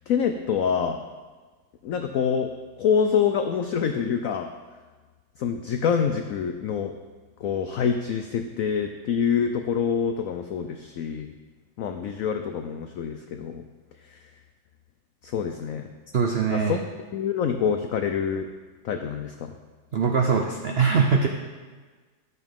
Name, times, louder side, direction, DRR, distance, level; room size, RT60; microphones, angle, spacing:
voice 1, 0.1-1.0 1.8-2.5 2.8-4.5 5.4-6.9 7.4-11.3 11.8-13.6 14.1-14.2 15.2-15.9 16.5-16.8 17.1-18.5 18.8-19.5, left 7 dB, 90° left, 6 dB, 0.7 m, -26 dB
voice 2, 16.1-16.8 19.9-21.3, right 5 dB, 75° right, 2 dB, 0.5 m, -22 dB
11.0 x 8.1 x 3.6 m, 1.4 s
omnidirectional pair, 2.0 m